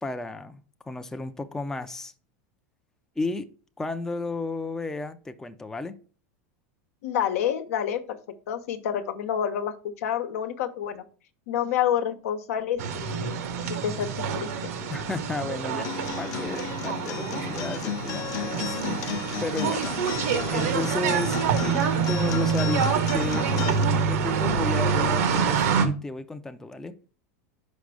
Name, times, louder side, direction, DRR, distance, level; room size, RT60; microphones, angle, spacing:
voice 1, 0.0-2.1 3.2-3.5 3.8-6.0 14.9-20.0 20.5-27.0, left 3 dB, 5° left, 0.4 m, -33 dB
voice 2, 7.0-8.2 8.5-11.0 11.5-13.3 13.7-14.7, left 9 dB, 80° left, 0.9 m, -28 dB
sound 1, 12.8-25.9, right 6 dB, 80° right, 1.2 m, -26 dB
Acoustic guitar, 15.8-23.8, left 9 dB, 45° left, 0.8 m, -34 dB
5.1 x 5.1 x 4.7 m
supercardioid pair, 130°, 8 cm